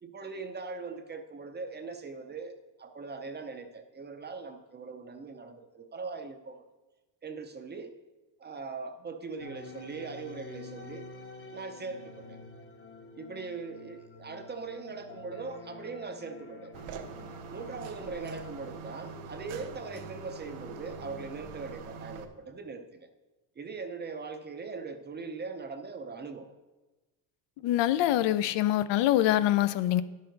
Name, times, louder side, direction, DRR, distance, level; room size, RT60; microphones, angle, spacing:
voice 1, 0.0-6.6 7.2-8.0 8.4-11.1 11.5-12.4 13.2-16.8 17.5-23.1 23.6-26.5, right 4 dB, 20° right, 0.6 m, -40 dB
sound 1, 9.4-21.5, left 3 dB, 30° left, 0.8 m, -48 dB
sound 2, 16.7-22.2, right 6 dB, 65° right, 1.0 m, -44 dB
voice 2, 27.6-30.0, left 13 dB, 65° left, 0.6 m, -24 dB
11.0 x 6.6 x 3.9 m
cardioid pair, 120°, 47 cm